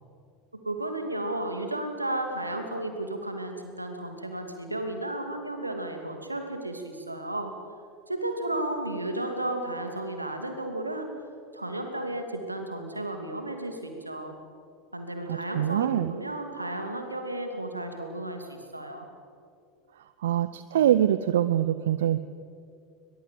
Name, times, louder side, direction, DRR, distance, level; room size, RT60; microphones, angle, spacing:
voice 1, 0.6-7.5 8.1-11.1 11.5-14.3 14.9-19.1, right 1 dB, 90° right, 5 dB, 2.6 m, -33 dB
voice 2, 15.3-16.1 20.2-22.2, right 11 dB, 70° right, 14 dB, 0.6 m, -24 dB
21.5 x 21.5 x 7.8 m, 2.4 s
figure-of-eight pair, 75°, 0 cm